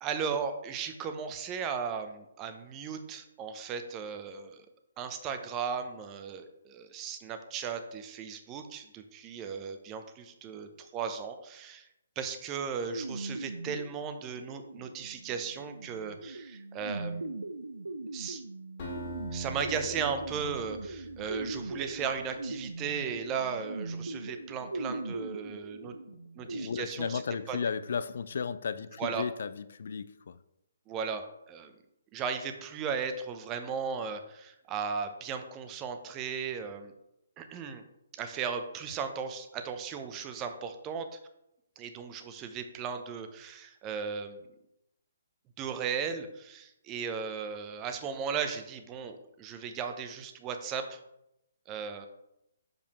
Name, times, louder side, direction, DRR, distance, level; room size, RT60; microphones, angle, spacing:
voice 1, 0.0-4.7 5.0-11.9 12.2-17.3 18.1-18.4 19.3-25.9 26.4-27.2 27.5-27.6 29.0-29.2 30.9-31.7 32.1-36.9 37.4-37.8 38.2-41.1 41.8-44.4 45.6-51.0 51.7-52.1, right 6 dB, 20° right, 7 dB, 0.7 m, -36 dB
sound 1, 12.9-26.7, right 2 dB, 75° right, 0.5 m, -40 dB
Acoustic guitar, 18.8-21.8, equal, 40° left, 2.3 m, -44 dB
voice 2, 26.4-30.4, left 6 dB, 55° left, 14 dB, 0.4 m, -34 dB
6.6 x 5.2 x 3.0 m, 0.84 s
figure-of-eight pair, 135°, 0 cm